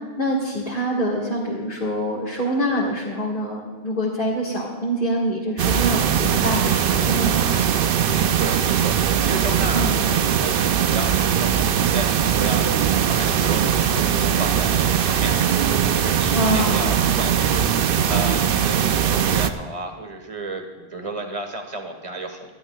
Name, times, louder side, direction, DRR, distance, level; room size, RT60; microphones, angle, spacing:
voice 1, 0.2-7.6 9.7-10.0 16.3-16.9, equal, 50° left, -6 dB, 1.9 m, -25 dB
sound 1, 5.6-19.5, right 8 dB, 60° right, 0.7 m, -20 dB
voice 2, 8.1-15.5 16.0-17.7 18.1-22.5, right 2 dB, 30° right, 4 dB, 1.5 m, -33 dB
23.0 x 12.0 x 2.3 m, 1.4 s
omnidirectional pair, 1.1 m